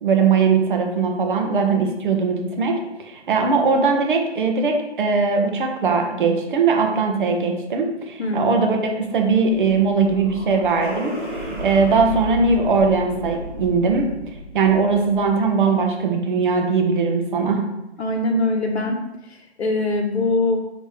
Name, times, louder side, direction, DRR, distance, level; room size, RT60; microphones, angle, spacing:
voice 1, 0.0-14.1 14.5-17.6, right 4 dB, 50° right, 3 dB, 0.9 m, -20 dB
voice 2, 8.2-8.6 18.0-19.0 19.6-20.6, left 2 dB, 70° left, 1 dB, 1.2 m, -22 dB
sound 1, 9.1-15.6, equal, 5° right, 1.4 m, -33 dB
4.9 x 3.1 x 3.5 m, 0.94 s
hypercardioid pair, 145°, 34 cm